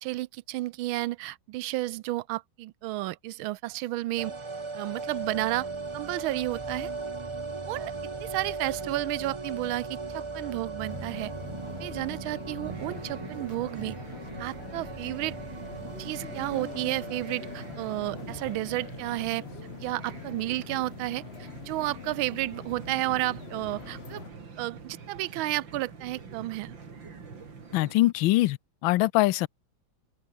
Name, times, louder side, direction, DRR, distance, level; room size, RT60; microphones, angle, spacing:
voice 1, 0.0-4.3 4.7-5.7 5.9-6.9 7.7-7.9 8.2-11.3 11.8-13.9 14.4-15.4 16.0-19.4 19.8-24.2 24.6-26.7, right 17 dB, 85° right, 1.4 m, -32 dB
sound 1, 4.2-19.1 19.3-19.4, right 3 dB, 25° right, 0.6 m, -38 dB
sound 2, 10.9-24.3, left 7 dB, 45° left, 0.9 m, -44 dB
sound 3, 12.6-28.0, right 5 dB, 70° right, 3.7 m, -45 dB
voice 2, 27.7-29.5, left 17 dB, 80° left, 1.4 m, -23 dB
open air
omnidirectional pair, 2.2 m